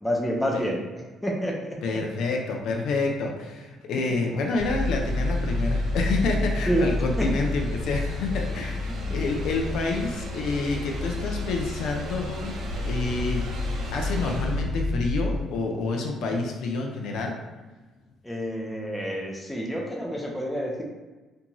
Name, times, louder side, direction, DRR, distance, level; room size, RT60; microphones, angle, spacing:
voice 1, 0.0-0.8 1.2-1.8 6.7-7.3 9.1-9.2 18.2-20.8, equal, 5° left, -1 dB, 0.4 m, -28 dB
voice 2, 1.8-12.5 12.9-13.4 13.9-17.3, left 3 dB, 75° left, 2 dB, 0.4 m, -28 dB
sound 1, 4.6-15.4, left 2 dB, 65° right, 0.6 m, -29 dB
2.6 x 2.2 x 2.9 m, 1.2 s
cardioid pair, 140°, 0 cm